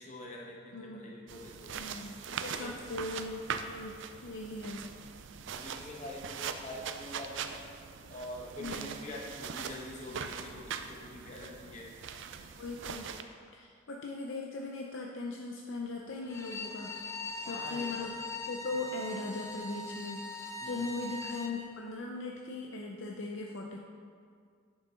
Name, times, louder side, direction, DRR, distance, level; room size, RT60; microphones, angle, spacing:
voice 1, 0.0-1.9 2.4-2.8 5.5-7.7 8.1-11.9 17.4-17.9 20.6-20.9, left 1 dB, 35° left, -2 dB, 1.2 m, -45 dB
voice 2, 0.7-1.1 1.7-3.9 4.2-4.8 8.6-9.0 12.6-13.1 13.5-16.9 17.4-18.2 18.5-23.8, left 3 dB, 60° left, 0 dB, 0.6 m, -39 dB
sound 1, 1.3-13.2, right 6 dB, 55° right, 0.4 m, -41 dB
Bowed string instrument, 16.2-21.6, left 2 dB, 15° left, 0.4 m, -41 dB
10.5 x 6.0 x 3.8 m, 2.1 s
head